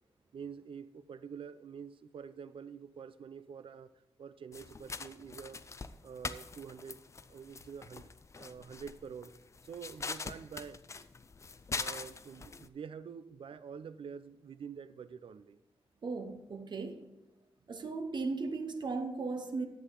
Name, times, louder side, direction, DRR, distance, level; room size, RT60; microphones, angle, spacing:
voice 1, 0.3-3.9 4.2-5.6 6.0-7.0 7.3-9.3 9.6-10.8 11.7-15.6, right 6 dB, 65° right, 0.5 m, -47 dB
sound 1, 4.5-12.7, left 4 dB, 30° left, 0.4 m, -43 dB
voice 2, 16.0-17.1 17.7-19.7, right 3 dB, 50° right, 0.9 m, -36 dB
11.0 x 8.0 x 3.8 m
wide cardioid pair, 155°, 10 cm